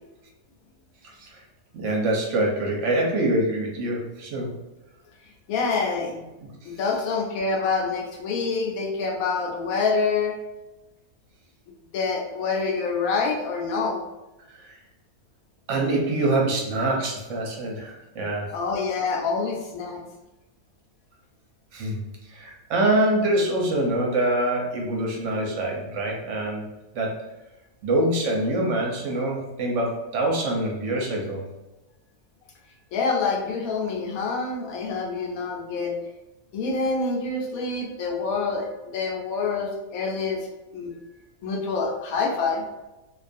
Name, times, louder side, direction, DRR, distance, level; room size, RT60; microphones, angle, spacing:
voice 1, 1.7-4.5 14.5-14.8 15.7-18.6 21.7-22.0 22.3-26.6 26.9-27.2 27.8-31.4, right 1 dB, 65° right, 0 dB, 0.8 m, -25 dB
voice 2, 5.5-6.3 6.6-10.3 11.9-14.0 18.5-20.0 32.9-35.9 36.5-40.4 40.7-40.9 41.4-42.6, left 4 dB, 80° left, 0 dB, 1.0 m, -26 dB
2.5 x 2.3 x 2.5 m, 1.0 s
omnidirectional pair, 1.5 m